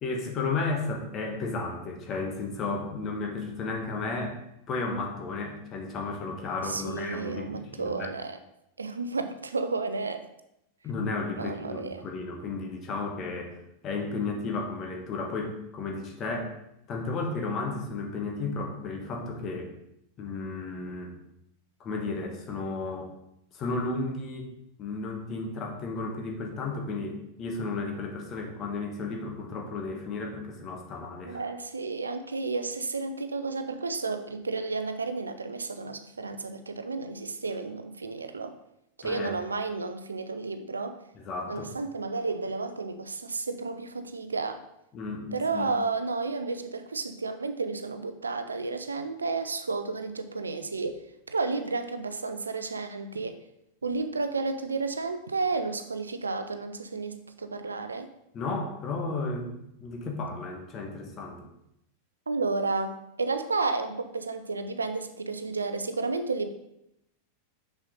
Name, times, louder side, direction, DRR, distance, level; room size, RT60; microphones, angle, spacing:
voice 1, 0.0-4.4 4.7-8.1 10.8-13.6 13.8-16.5 16.9-19.7 20.2-21.1 21.8-23.1 23.5-24.5 24.8-31.4 39.0-39.4 41.2-41.7 44.9-45.7 58.3-59.5 59.8-61.4, left 3 dB, 30° left, 2 dB, 1.3 m, -33 dB
voice 2, 6.6-8.4 8.8-10.2 11.4-12.0 31.2-38.6 39.0-41.0 41.5-44.6 45.3-51.0 51.3-53.4 53.8-58.1 62.3-66.5, right 3 dB, 75° right, 9 dB, 0.5 m, -32 dB
6.3 x 6.2 x 3.9 m, 0.82 s
figure-of-eight pair, 90°, 0 cm